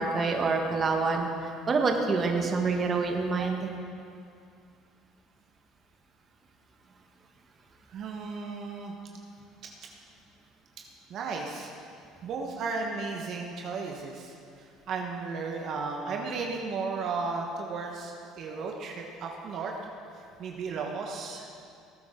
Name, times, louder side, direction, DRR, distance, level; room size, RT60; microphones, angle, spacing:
voice 1, 0.0-3.7, right 4 dB, 35° right, 3 dB, 1.5 m, -27 dB
voice 2, 7.9-8.9 11.1-11.7 12.2-14.3 14.9-19.7 20.4-21.5, right 4 dB, 55° right, 1 dB, 1.3 m, -34 dB
19.0 x 8.6 x 3.8 m, 2.4 s
supercardioid pair, 80°, 0 cm